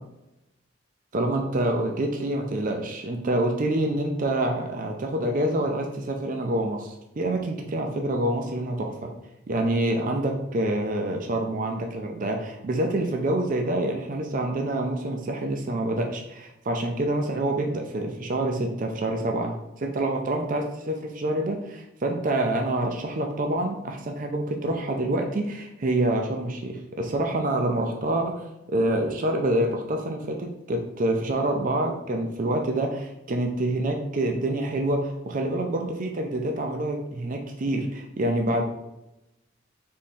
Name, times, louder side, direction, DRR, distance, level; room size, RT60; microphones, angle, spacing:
voice 1, 1.1-9.1 9.5-38.6, right 1 dB, 45° right, 3 dB, 0.5 m, -27 dB
3.6 x 3.1 x 4.3 m, 0.90 s
head